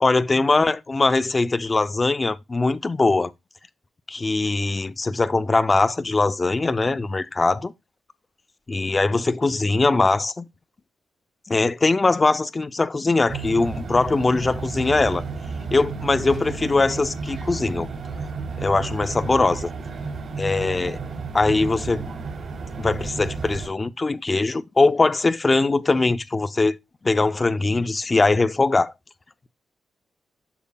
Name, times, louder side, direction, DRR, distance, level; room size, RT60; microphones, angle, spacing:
voice 1, 0.0-3.3 4.1-7.7 8.7-10.4 11.5-15.2 15.7-17.9 18.6-19.7 20.4-21.0 21.3-22.1 22.8-26.8 27.0-28.9, left 3 dB, 20° left, 0.4 m, -21 dB
sound 1, 13.3-23.7, right 4 dB, 55° right, 3.0 m, -32 dB
12.5 x 4.9 x 2.2 m
wide cardioid pair, 165°, 0 cm